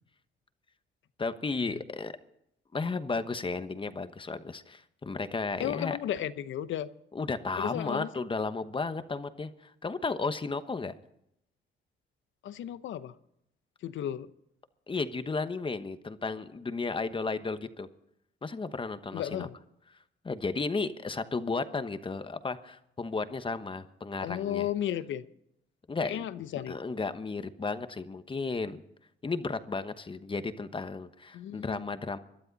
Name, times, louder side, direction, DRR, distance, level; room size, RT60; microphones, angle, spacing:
voice 1, 1.2-2.1 2.7-6.0 7.1-10.9 14.9-17.9 18.4-19.5 20.2-24.7 25.9-26.3 26.7-28.8 29.2-32.2, left 4 dB, 25° left, 1.1 m, -34 dB
voice 2, 5.6-6.9 7.6-8.1 12.4-13.2 13.8-14.3 19.1-19.5 24.2-25.3 26.0-26.8 31.3-31.9, left 11 dB, 75° left, 0.9 m, -34 dB
21.5 x 12.0 x 4.1 m
cardioid pair, 90°, 20 cm